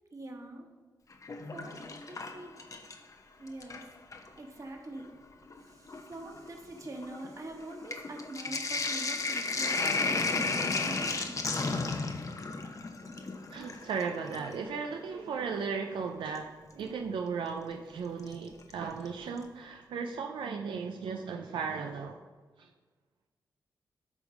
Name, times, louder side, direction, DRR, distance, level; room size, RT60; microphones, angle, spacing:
voice 1, 0.1-0.7 1.5-1.8 2.1-2.6 3.4-5.1 5.6-11.7, right 1 dB, 40° right, 1 dB, 1.5 m, -44 dB
Sink (filling or washing), 1.1-3.1 3.5-4.3 5.1-5.2 5.5-14.6 16.4-16.5 18.3-18.7 19.1-19.2 19.4-19.5, left 3 dB, 40° left, 0.7 m, -34 dB
voice 2, 13.5-22.2 22.6-22.7, right 5 dB, 80° right, 3 dB, 0.5 m, -36 dB
8.3 x 3.5 x 6.2 m, 1.4 s
cardioid pair, 60°, 8 cm